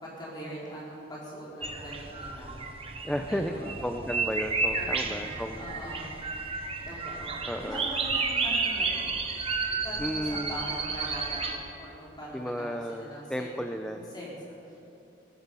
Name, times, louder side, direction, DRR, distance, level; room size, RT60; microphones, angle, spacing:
voice 1, 0.0-2.5 3.3-3.7 4.7-6.1 6.9-9.2 9.4-13.5 13.9-14.8, equal, 20° left, -6 dB, 4.2 m, -42 dB
sound 1, 1.6-11.6, right 4 dB, 30° right, 1.1 m, -32 dB
voice 2, 3.0-5.6 7.5-7.9 10.0-10.6 12.3-14.1, equal, 5° left, 4 dB, 0.5 m, -33 dB
17.0 x 15.0 x 5.5 m, 2.8 s
head